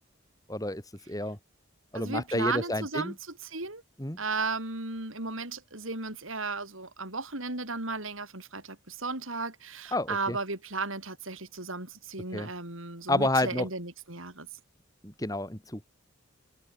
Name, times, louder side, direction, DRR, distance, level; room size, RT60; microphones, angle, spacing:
voice 1, 0.5-0.8 1.1-1.4 1.9-3.1 4.0-4.2 9.9-10.4 12.3-12.5 13.1-13.7 15.0-15.8, left 1 dB, 15° left, 3.0 m, -29 dB
voice 2, 1.9-3.1 3.4-3.8 4.2-14.5, right 3 dB, 80° right, 7.9 m, -35 dB
open air
head